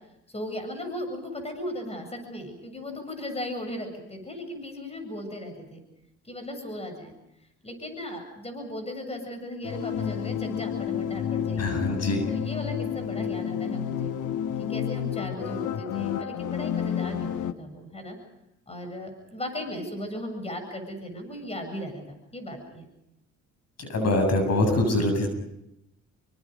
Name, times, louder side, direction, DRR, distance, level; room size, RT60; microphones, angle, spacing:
voice 1, 0.3-5.8 6.2-7.1 7.6-11.8 12.3-14.1 14.6-18.2 18.7-22.0 22.3-22.8, left 1 dB, 20° left, 6 dB, 7.7 m, -36 dB
sound 1, 9.6-17.5, left 9 dB, 80° left, 1.4 m, -30 dB
voice 2, 11.6-12.3 23.8-25.3, left 1 dB, 55° left, 6 dB, 7.7 m, -24 dB
29.0 x 25.0 x 5.3 m, 0.83 s
cardioid pair, 90°, 30 cm